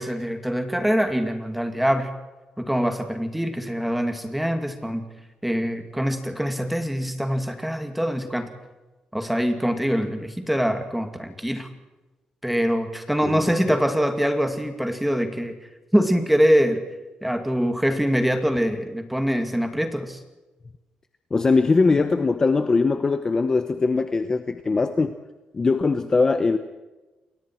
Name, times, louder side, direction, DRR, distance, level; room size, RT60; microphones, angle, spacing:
voice 1, 0.0-2.1 2.6-5.0 5.4-8.5 9.1-11.7 12.4-15.5 15.9-16.8 17.2-20.2, equal, 5° right, 6 dB, 2.3 m, -24 dB
voice 2, 13.2-13.7 21.3-25.1 25.5-26.6, left 4 dB, 20° left, 8 dB, 0.9 m, -21 dB
29.0 x 22.5 x 4.5 m, 1.1 s
cardioid pair, 170°, 3 cm